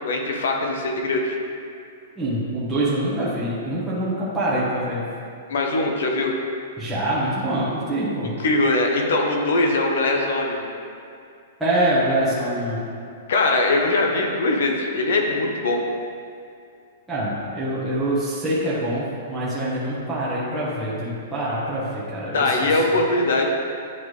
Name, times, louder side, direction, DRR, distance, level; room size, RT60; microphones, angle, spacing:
voice 1, 0.0-1.4 5.5-6.4 8.4-10.7 13.3-15.8 22.3-23.5, left 2 dB, 75° left, 1 dB, 0.9 m, -21 dB
voice 2, 2.2-5.0 6.8-8.4 11.6-12.8 17.1-22.8, right 1 dB, 5° right, -10 dB, 1.1 m, -25 dB
9.7 x 3.5 x 3.2 m, 2.5 s
hypercardioid pair, 170°, 0 cm